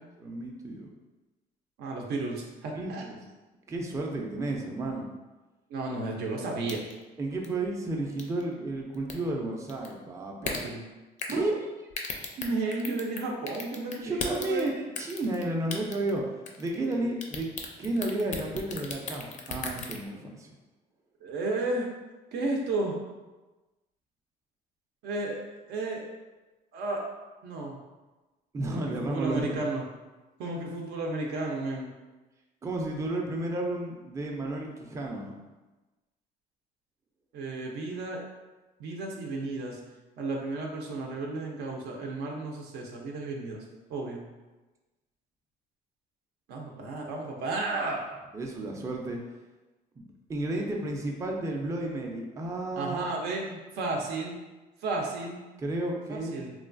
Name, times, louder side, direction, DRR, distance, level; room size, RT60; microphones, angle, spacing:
voice 1, 0.2-0.9 2.7-3.2 3.7-5.1 7.2-10.6 11.3-11.5 14.0-17.5 17.8-20.5 28.5-29.6 32.6-35.5 48.3-49.2 50.0-50.1 50.3-53.1 53.5-53.6 55.6-56.4, right 2 dB, 20° right, 0 dB, 0.4 m, -32 dB
voice 2, 1.8-3.0 5.7-6.8 10.4-10.8 11.3-11.4 12.4-14.7 21.2-21.9 22.3-23.0 25.0-26.0 26.7-27.0 27.4-27.8 28.7-29.8 30.4-31.9 37.3-38.2 38.8-39.8 40.2-43.6 43.9-44.2 46.5-48.0 52.7-53.4 53.7-54.3 54.8-55.4 56.1-56.5, right 2 dB, 75° right, 0 dB, 0.5 m, -33 dB
sound 1, 6.7-7.0 7.4-7.5 8.2-8.4 8.9-9.1 9.7-9.9 10.4-10.6 11.2-11.4 11.9-13.2 13.5-14.7 15.0-15.4 15.7-16.2 16.5-16.9 17.2-20.0, left 5 dB, 45° left, 0.4 m, -35 dB
3.0 x 2.2 x 2.5 m, 1.2 s
cardioid pair, 110°, 17 cm